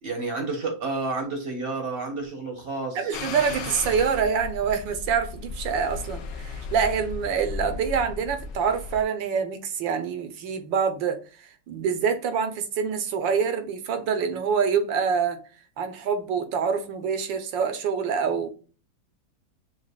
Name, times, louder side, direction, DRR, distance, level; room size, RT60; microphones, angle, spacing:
voice 1, 0.0-3.1, right 3 dB, 40° right, 1.0 m, -30 dB
voice 2, 2.9-15.4 15.8-18.5, right 6 dB, 75° right, 1.5 m, -26 dB
sound 1, 3.1-9.0, left 4 dB, 70° left, 1.4 m, -36 dB
7.2 x 2.5 x 2.3 m
omnidirectional pair, 2.1 m